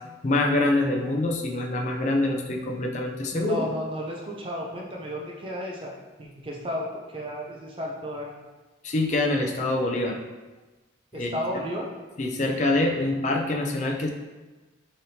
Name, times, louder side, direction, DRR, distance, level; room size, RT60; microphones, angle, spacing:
voice 1, 0.2-3.6 8.8-10.2 11.1-11.3 12.2-14.1, left 2 dB, 40° left, 1 dB, 0.4 m, -25 dB
voice 2, 3.3-5.9 6.2-8.3 11.1-11.9, equal, 25° right, -2 dB, 0.5 m, -33 dB
4.1 x 3.3 x 2.7 m, 1.2 s
head